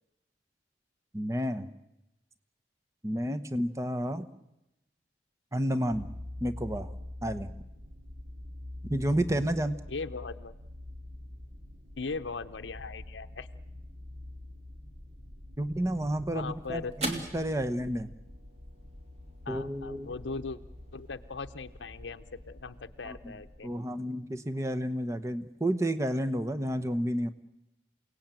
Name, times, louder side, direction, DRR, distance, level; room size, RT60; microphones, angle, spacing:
voice 1, 1.1-1.7 3.0-4.3 5.5-6.1 6.4-6.9 7.2-7.5 8.8-9.8 15.6-18.1 19.5-20.1 23.0-23.3 23.6-27.3, right 1 dB, 15° right, 9 dB, 1.0 m, -31 dB
sound 1, 5.9-23.6, left 1 dB, 55° right, 2.7 m, -46 dB
voice 2, 9.9-10.5 12.0-13.5 16.3-16.9 19.4-20.6 20.9-23.7, left 4 dB, 80° left, 8 dB, 0.8 m, -39 dB
sound 2, 15.7-24.3, right 1 dB, 35° right, 2.8 m, -45 dB
28.5 x 18.0 x 9.1 m, 0.92 s
head